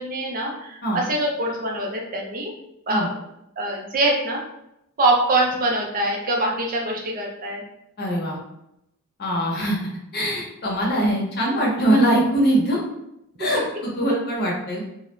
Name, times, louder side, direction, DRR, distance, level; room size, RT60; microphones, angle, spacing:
voice 1, 0.0-2.5 2.9-3.2 3.6-4.4 5.0-7.6, right 2 dB, 40° right, 0 dB, 0.4 m, -24 dB
voice 2, 8.0-8.4 9.2-9.8 10.1-12.8 13.4-14.8, right 1 dB, 45° left, -3 dB, 0.7 m, -22 dB
2.4 x 2.0 x 3.0 m, 0.82 s
head